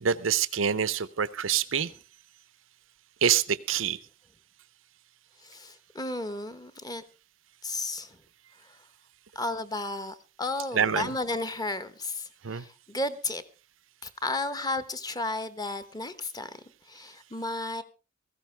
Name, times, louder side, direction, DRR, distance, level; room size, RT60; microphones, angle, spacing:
voice 1, 0.0-1.9 3.2-4.0 10.7-11.1 12.4-12.6, right 8 dB, 90° right, 0.7 m, -26 dB
voice 2, 5.4-7.0 7.6-8.2 8.6-8.8 9.3-13.4 14.0-17.8, left 2 dB, 20° left, 1.0 m, -33 dB
17.0 x 15.0 x 3.3 m
head